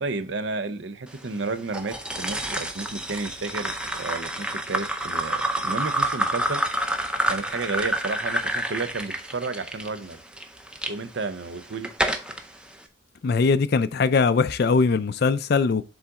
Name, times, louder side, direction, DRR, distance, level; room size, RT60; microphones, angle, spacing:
voice 1, 0.0-6.6 7.2-10.2 10.9-11.9, right 3 dB, 60° right, 0.6 m, -32 dB
sound 1, 1.7-10.9 11.5-12.4, right 1 dB, 5° right, 0.5 m, -28 dB
voice 2, 13.2-15.8, left 4 dB, 50° left, 0.4 m, -21 dB
7.2 x 3.9 x 3.6 m
head